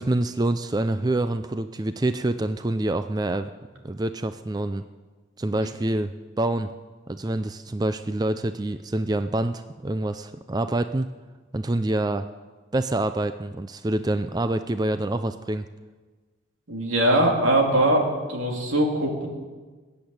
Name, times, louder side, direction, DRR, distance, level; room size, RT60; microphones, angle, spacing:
voice 1, 0.0-3.5 3.8-4.8 5.4-6.7 7.1-11.1 11.5-12.3 12.7-15.6, right 1 dB, 20° right, 10 dB, 0.4 m, -26 dB
voice 2, 16.7-19.3, right 1 dB, 85° right, 0 dB, 3.3 m, -21 dB
21.0 x 7.9 x 8.7 m, 1.4 s
head